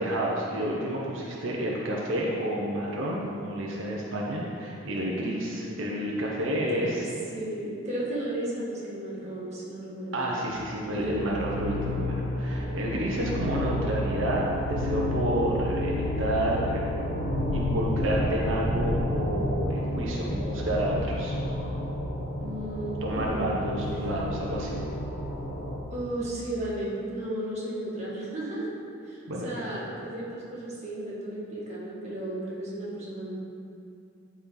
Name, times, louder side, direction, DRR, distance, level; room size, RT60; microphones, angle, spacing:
voice 1, 0.0-7.1 10.1-16.8 17.5-21.4 23.0-24.8 29.3-29.5, right 1 dB, 80° right, -4 dB, 1.0 m, -30 dB
voice 2, 5.5-6.3 6.8-7.1 7.3-10.4 10.9-11.3 22.4-23.5 25.9-28.7 29.1-33.4, right 1 dB, 35° right, -8 dB, 2.0 m, -34 dB
sound 1, 10.5-25.8, left 1 dB, 65° left, 1.4 m, -30 dB
12.0 x 4.4 x 4.0 m, 2.6 s
head